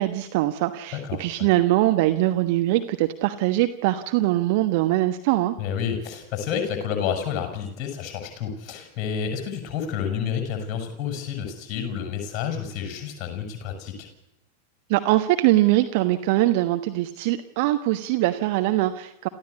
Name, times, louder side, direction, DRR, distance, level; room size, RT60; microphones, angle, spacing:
voice 1, 0.0-5.5 14.9-19.3, right 16 dB, 50° right, 8 dB, 1.2 m, -22 dB
voice 2, 1.0-1.5 5.6-14.1, left 7 dB, 35° left, 5 dB, 6.9 m, -30 dB
27.5 x 15.0 x 8.4 m, 0.83 s
figure-of-eight pair, 90°, 0 cm